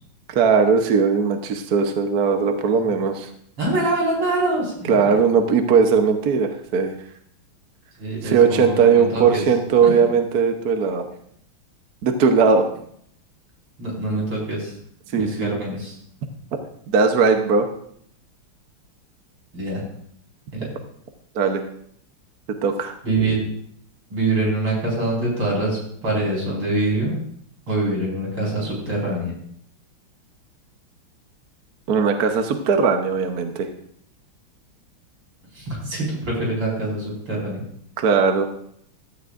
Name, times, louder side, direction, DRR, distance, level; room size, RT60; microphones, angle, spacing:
voice 1, 0.3-3.3 4.9-6.9 8.2-11.0 12.0-12.7 15.1-15.6 16.9-17.7 21.3-21.6 22.6-23.0 31.9-33.7 38.0-38.5, right 5 dB, 55° right, 5 dB, 1.3 m, -18 dB
voice 2, 3.6-5.1 8.0-9.4 9.8-9.9 13.8-14.7 15.1-15.9 19.5-19.8 20.5-20.7 23.0-23.4 24.1-27.2 27.7-29.3 35.5-37.6, right 2 dB, 80° right, -4 dB, 5.9 m, -24 dB
15.5 x 13.5 x 2.5 m, 0.66 s
omnidirectional pair, 2.3 m